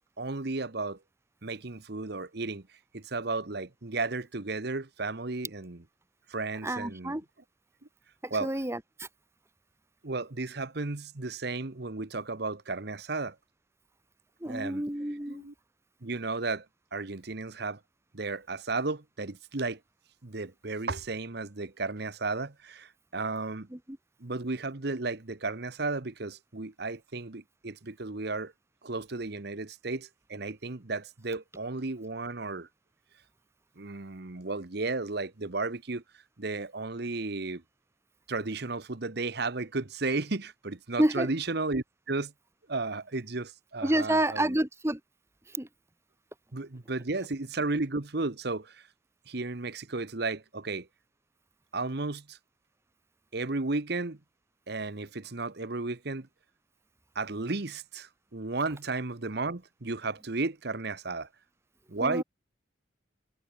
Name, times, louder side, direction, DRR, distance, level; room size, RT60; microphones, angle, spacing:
voice 1, 0.2-1.0 1.4-2.6 2.9-5.8 6.3-7.2 8.3-8.5 10.0-13.3 14.5-14.8 15.3-15.5 16.0-16.6 16.9-17.8 18.1-19.8 20.2-23.7 24.2-28.5 28.8-32.7 33.8-36.0 36.4-37.6 38.3-42.3 42.7-44.6 46.5-48.8 49.3-50.9 51.7-52.4 53.3-54.2 54.7-56.3 57.1-61.3 61.9-62.2, right 3 dB, 55° right, 1.1 m, -34 dB
voice 2, 6.6-7.2 8.2-9.1 14.4-15.4 23.7-24.0 41.0-41.3 43.8-45.0 45.5-45.7 62.0-62.2, right 1 dB, 15° right, 1.3 m, -29 dB
head